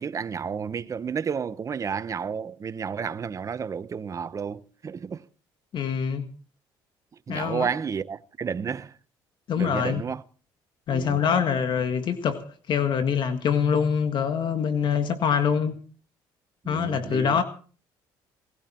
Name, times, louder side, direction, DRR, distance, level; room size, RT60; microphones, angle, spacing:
voice 1, 0.0-5.2 7.3-9.0 9.6-10.2 10.9-11.2 16.6-17.4, right 6 dB, 35° right, 0.8 m, -31 dB
voice 2, 5.7-6.2 7.3-7.7 9.5-10.0 10.9-15.8 16.6-17.4, left 7 dB, 55° left, 1.7 m, -24 dB
19.0 x 16.0 x 4.4 m
cardioid pair, 95°, 9 cm